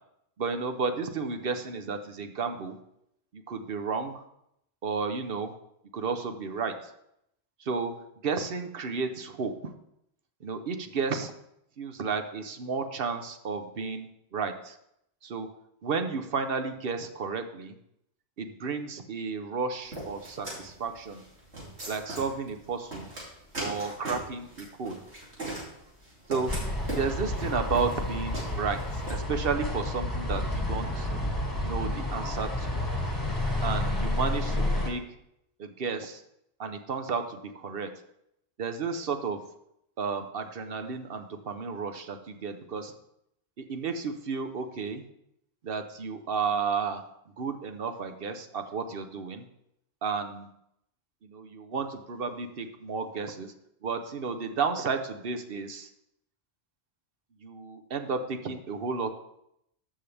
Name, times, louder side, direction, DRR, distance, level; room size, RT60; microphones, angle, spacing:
voice 1, 0.4-2.8 3.3-4.2 4.8-5.5 5.9-6.9 7.6-7.9 8.2-9.7 10.4-11.3 11.8-14.8 15.2-15.5 15.8-17.7 18.4-21.2 21.9-23.1 23.6-25.0 26.3-26.5 26.9-31.1 31.6-32.8 33.6-35.0 35.6-36.2 36.6-37.9 38.6-39.4 40.0-42.9 43.6-45.0 45.6-47.0 47.4-49.4 50.0-50.5 51.2-53.5 53.8-55.9 57.4-59.1, right 5 dB, 60° right, 8 dB, 1.0 m, -32 dB
sound 1, 19.9-29.1, right 1 dB, 80° right, 3.0 m, -39 dB
sound 2, 26.5-34.9, left 1 dB, 20° left, 1.6 m, -30 dB
14.0 x 5.7 x 3.4 m, 0.77 s
omnidirectional pair, 1.1 m